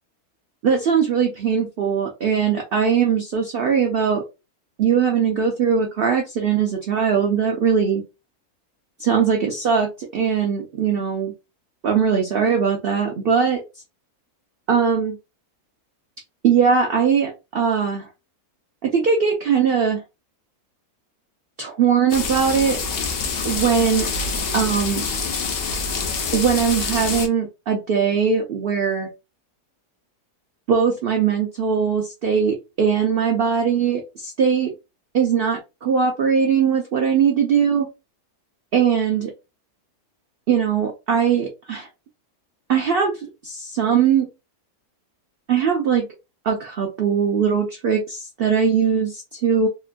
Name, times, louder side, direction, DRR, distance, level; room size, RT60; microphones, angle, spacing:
voice 1, 0.6-4.2 4.8-8.0 9.0-11.3 11.8-13.6 14.7-15.2 16.4-18.1 18.8-20.0 21.6-22.8 23.4-24.1 24.5-25.0 26.3-29.1 30.7-34.7 35.1-37.9 38.7-39.3 40.5-41.9 42.7-44.3 45.5-46.1 46.4-49.7, right 7 dB, 80° right, 2 dB, 0.5 m, -20 dB
sound 1, 22.1-27.3, left 4 dB, 70° left, 0.5 m, -26 dB
2.8 x 2.2 x 2.4 m, 0.26 s
omnidirectional pair, 1.6 m